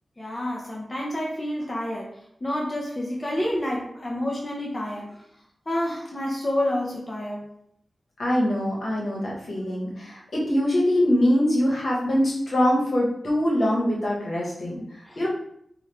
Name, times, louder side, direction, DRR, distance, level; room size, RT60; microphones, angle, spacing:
voice 1, 0.2-2.1 2.4-5.1 5.7-7.4 15.1-15.2, left 1 dB, 25° left, -3 dB, 0.5 m, -28 dB
voice 2, 8.2-15.3, equal, 65° left, -4 dB, 1.1 m, -23 dB
3.0 x 2.3 x 3.3 m, 0.73 s
wide cardioid pair, 130°, 0 cm